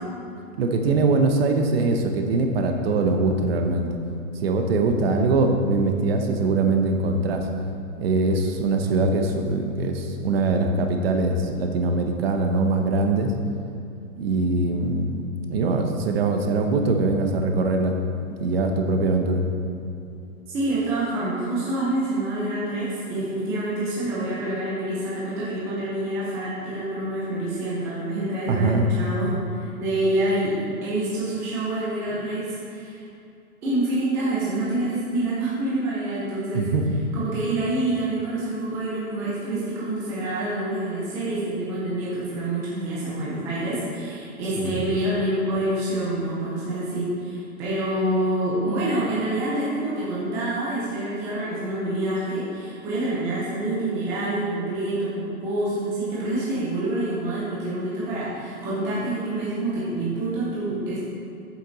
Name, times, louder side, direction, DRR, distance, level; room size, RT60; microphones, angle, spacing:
voice 1, 0.6-3.9 4.4-7.5 8.0-13.3 14.2-15.1 15.5-18.0 18.4-19.4 28.5-28.9 36.5-37.0 44.6-44.8, right 3 dB, 45° right, 4 dB, 1.0 m, -22 dB
voice 2, 20.5-33.0 33.6-36.7 37.1-61.0, right 1 dB, 5° right, -8 dB, 0.5 m, -27 dB
7.9 x 7.8 x 4.0 m, 2.7 s
hypercardioid pair, 155°, 44 cm